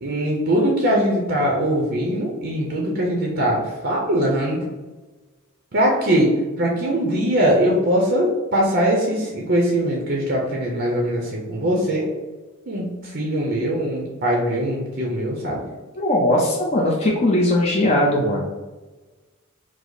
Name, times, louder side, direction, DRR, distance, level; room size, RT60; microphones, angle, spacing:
voice 1, 0.0-4.6 5.7-6.3 6.6-12.1 12.7-15.6, equal, 50° right, -1 dB, 0.6 m, -21 dB
voice 2, 15.9-18.6, left 1 dB, 30° left, -2 dB, 0.5 m, -19 dB
4.9 x 2.0 x 3.9 m, 1.2 s
head